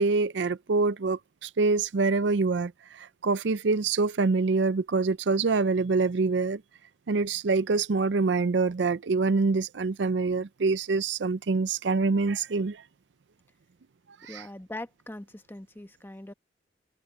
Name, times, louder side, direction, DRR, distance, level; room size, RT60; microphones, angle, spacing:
voice 1, 0.0-6.6 7.1-12.8 14.2-14.5, right 4 dB, 65° right, 0.5 m, -25 dB
voice 2, 14.3-16.3, left 1 dB, 10° left, 1.1 m, -41 dB
head